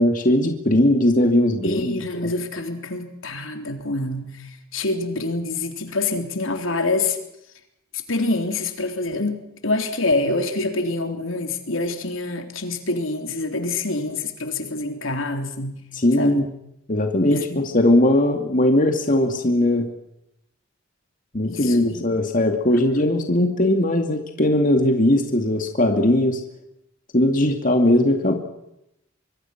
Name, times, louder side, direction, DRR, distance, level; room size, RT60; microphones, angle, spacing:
voice 1, 0.0-2.0 15.9-16.5 16.9-19.9 21.3-26.4 27.1-28.3, left 1 dB, 40° left, 4 dB, 2.5 m, -19 dB
voice 2, 1.6-7.2 8.1-15.8 16.2-16.5 17.3-17.7 21.4-22.1, left 2 dB, 75° left, 5 dB, 3.7 m, -26 dB
24.5 x 24.0 x 6.0 m, 0.83 s
head